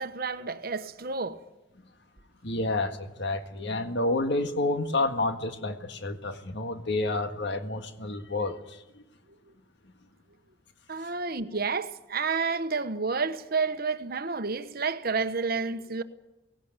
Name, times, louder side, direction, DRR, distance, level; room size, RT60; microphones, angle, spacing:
voice 1, 0.0-1.4 10.9-16.0, right 4 dB, 45° right, 1.1 m, -30 dB
voice 2, 2.4-9.0 11.0-11.1, left 2 dB, 55° left, 1.7 m, -29 dB
18.5 x 17.5 x 9.0 m
head